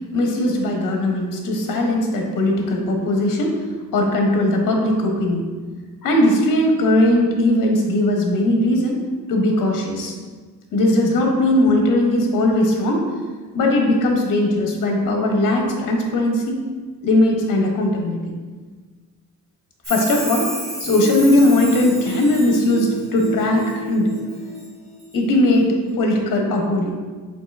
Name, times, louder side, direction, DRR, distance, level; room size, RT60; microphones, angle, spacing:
voice 1, 0.1-3.5 3.9-5.5 6.0-9.0 9.3-10.1 10.7-13.1 13.5-16.6 17.0-18.3 19.9-20.5 20.8-24.1 25.1-26.9, left 1 dB, 65° left, 1 dB, 0.8 m, -19 dB
Chime, 19.8-23.7 24.1-24.7 25.0-25.1, right 1 dB, 20° right, 1.0 m, -32 dB
sound 1, 20.8-25.2, right 2 dB, 70° right, 0.9 m, -31 dB
7.1 x 2.6 x 2.4 m, 1.4 s
cardioid pair, 130°, 36 cm